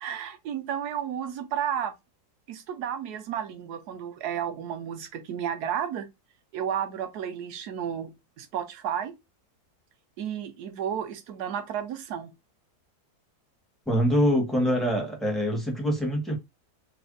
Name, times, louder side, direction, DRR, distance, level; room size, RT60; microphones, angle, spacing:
voice 1, 0.0-1.9 2.5-6.1 6.5-8.1 8.4-9.1 10.2-12.3, right 9 dB, 80° right, 1.2 m, -32 dB
voice 2, 13.9-16.4, equal, ahead, 1.0 m, -24 dB
3.4 x 2.1 x 3.8 m
omnidirectional pair, 1.7 m